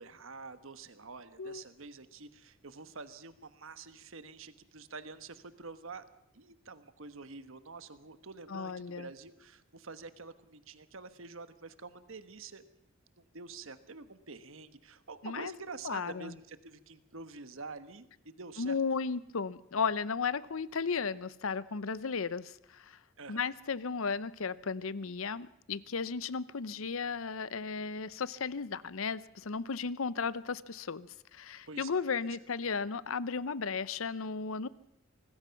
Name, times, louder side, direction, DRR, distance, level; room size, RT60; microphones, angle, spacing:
voice 1, 0.0-6.0 6.3-12.6 13.2-18.8 23.2-23.4 31.7-32.0, right 4 dB, 70° right, 11 dB, 1.3 m, -47 dB
voice 2, 8.5-9.1 15.2-15.5 15.8-16.3 18.6-23.0 23.3-34.7, left 5 dB, 75° left, 18 dB, 0.7 m, -35 dB
25.0 x 19.0 x 5.9 m, 0.77 s
head